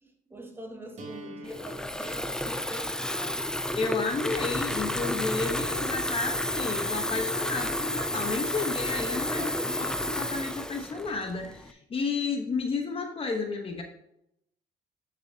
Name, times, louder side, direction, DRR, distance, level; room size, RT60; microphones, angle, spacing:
voice 1, 0.0-3.5 9.3-10.2, right 1 dB, 15° right, 2.0 m, -43 dB
sound 1, 1.0-6.9, right 1 dB, 45° right, 2.3 m, -50 dB
Water tap faucet / Fill (with liquid), 1.5-11.7, left 1 dB, 5° left, 0.5 m, -31 dB
voice 2, 3.8-13.8, left 4 dB, 35° left, 1.1 m, -32 dB
9.6 x 6.8 x 2.8 m
cardioid pair, 110°, 17 cm